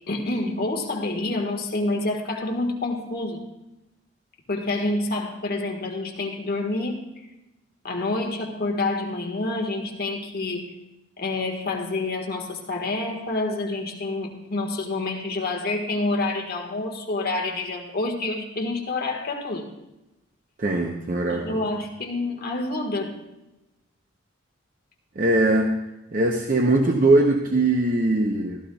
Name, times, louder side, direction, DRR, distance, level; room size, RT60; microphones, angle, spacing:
voice 1, 0.1-3.4 4.5-7.1 7.8-10.7 11.2-19.7 21.3-23.2, left 2 dB, 50° left, 1 dB, 1.6 m, -28 dB
voice 2, 20.6-21.6 25.2-25.7 26.1-28.6, right 2 dB, 40° right, 2 dB, 0.7 m, -21 dB
15.5 x 14.0 x 2.3 m, 0.97 s
head